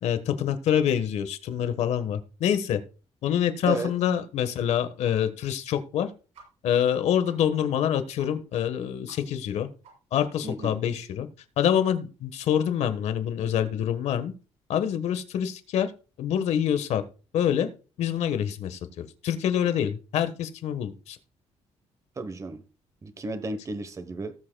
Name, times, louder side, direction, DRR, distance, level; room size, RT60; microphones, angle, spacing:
voice 1, 0.0-2.8 3.2-6.1 6.6-9.7 10.1-11.3 11.6-14.3 14.7-15.9 16.2-17.0 17.3-17.7 18.0-21.2, left 9 dB, 80° left, 1.3 m, -26 dB
sound 1, 6.3-6.5 6.8-6.9 7.2-7.4 7.7-7.8 8.2-8.3 8.6-8.7 9.0-9.2 9.5-9.6 9.8-9.9 10.2-10.3 10.6-11.0, right 4 dB, 80° right, 6.8 m, -51 dB
voice 2, 10.4-10.8 22.2-22.6 23.0-24.3, right 3 dB, 30° right, 1.1 m, -33 dB
18.5 x 7.7 x 2.3 m
cardioid pair, 135°, 11 cm